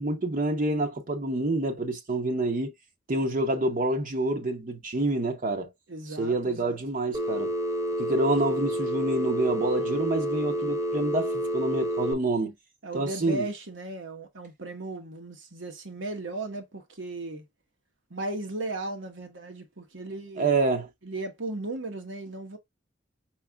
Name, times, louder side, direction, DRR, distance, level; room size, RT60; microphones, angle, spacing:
voice 1, 0.0-2.7 3.1-5.7 6.2-7.5 8.0-12.5 12.9-13.5 20.4-20.9, right 2 dB, 45° right, 0.9 m, -27 dB
voice 2, 5.9-6.8 12.8-17.4 18.1-20.6 21.0-22.6, right 2 dB, 85° right, 1.3 m, -36 dB
Telephone, 7.1-12.1, equal, 15° right, 0.9 m, -29 dB
4.8 x 4.5 x 2.3 m
head